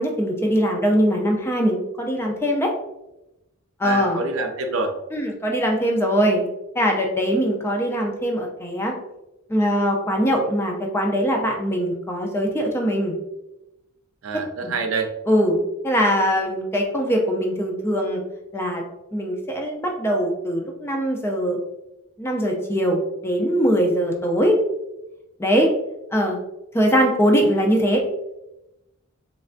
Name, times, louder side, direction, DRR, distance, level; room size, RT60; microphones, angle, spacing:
voice 1, 0.0-2.7 3.8-4.2 5.1-6.5 6.7-8.9 9.5-13.2 14.6-14.7 15.3-18.2 18.5-18.8 19.1-21.6 22.2-24.6 25.4-25.7 26.1-26.4 26.7-28.0, equal, 10° left, 1 dB, 0.4 m, -21 dB
voice 2, 3.8-4.9 14.2-15.1, right 3 dB, 70° right, 5 dB, 0.5 m, -26 dB
3.3 x 3.2 x 2.5 m, 0.92 s
head